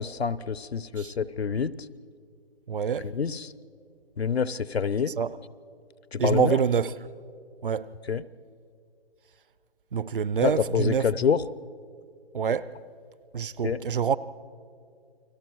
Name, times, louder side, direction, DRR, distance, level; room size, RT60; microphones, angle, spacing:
voice 1, 0.0-1.7 3.0-3.5 4.2-5.1 6.1-6.6 8.1-8.2 10.4-11.4 13.6-13.8, left 6 dB, 80° left, 0.8 m, -27 dB
voice 2, 2.7-3.1 5.2-5.3 6.2-6.9 7.6-7.9 9.9-11.1 12.3-12.7 13.3-14.2, right 7 dB, 55° right, 0.7 m, -26 dB
29.5 x 20.0 x 4.7 m
figure-of-eight pair, 160°, 31 cm